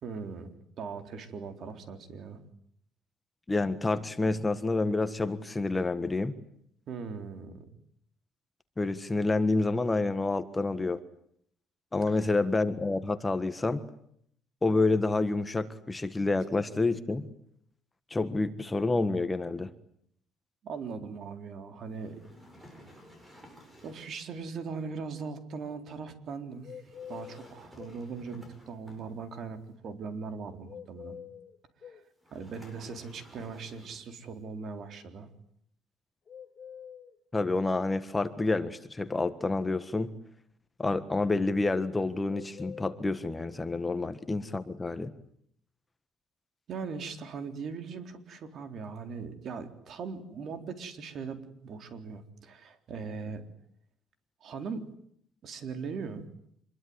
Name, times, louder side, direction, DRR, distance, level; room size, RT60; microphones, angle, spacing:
voice 1, 0.0-2.4 6.9-7.7 12.1-12.3 20.6-22.2 23.8-26.8 27.1-31.2 31.8-32.0 32.3-35.3 46.7-53.4 54.4-54.9 55.4-56.3, right 5 dB, 55° right, 8 dB, 3.9 m, -40 dB
voice 2, 3.5-6.3 8.8-11.0 11.9-13.8 14.6-17.3 18.1-19.7 37.3-40.1 40.8-45.1, left 3 dB, 15° left, 11 dB, 1.5 m, -28 dB
sound 1, 21.9-24.2 26.7-29.5 32.2-34.2, equal, 10° right, 8.0 m, -53 dB
sound 2, 26.6-28.0 30.7-32.1 36.3-37.7 42.2-43.6, left 8 dB, 40° left, 1.7 m, -46 dB
26.5 x 22.0 x 9.7 m, 0.69 s
cardioid pair, 130°, 0 cm